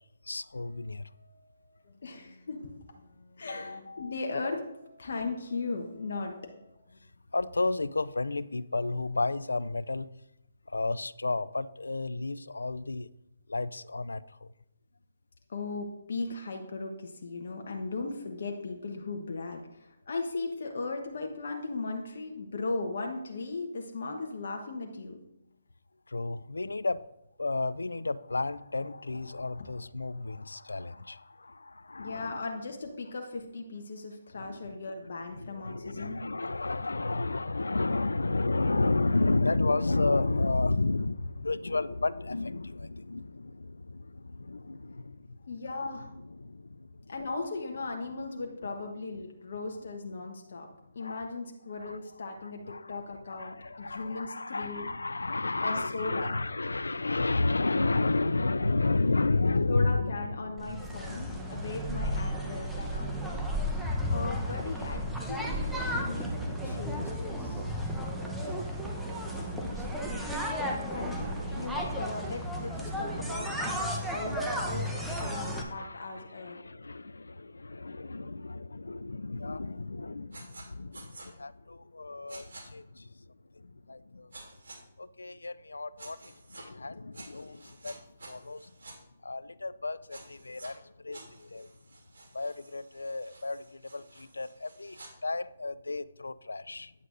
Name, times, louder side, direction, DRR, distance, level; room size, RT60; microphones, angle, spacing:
voice 1, 0.2-1.1 3.5-4.1 7.3-10.1 10.7-13.1 13.5-14.5 26.1-27.1 27.4-32.4 34.4-34.8 35.4-45.4 46.4-47.1 51.0-51.2 51.8-52.0 52.7-53.0 53.3-61.6 69.3-70.2 74.9-83.2 83.6-84.3 85.0-88.0 88.2-88.7 89.2-91.7 92.3-96.9, left 3 dB, 85° left, 17 dB, 0.3 m, -32 dB
voice 2, 0.9-7.0 15.5-25.2 32.0-36.2 45.4-46.1 47.1-54.9 55.6-56.4 59.7-63.5 64.1-67.6 70.9-76.6, left 3 dB, 60° left, 2 dB, 1.0 m, -38 dB
sound 1, 59.8-71.7, right 2 dB, 40° right, 1.6 m, -50 dB
sound 2, 60.6-75.6, equal, ahead, 0.8 m, -33 dB
sound 3, 80.3-80.6 80.9-81.3 82.3-82.6 84.3-84.8 86.0-86.6 87.1-88.9 90.1-90.7 91.1-95.1, right 2 dB, 70° right, 2.6 m, -50 dB
9.5 x 8.0 x 2.6 m, 0.86 s
figure-of-eight pair, 145°, 0 cm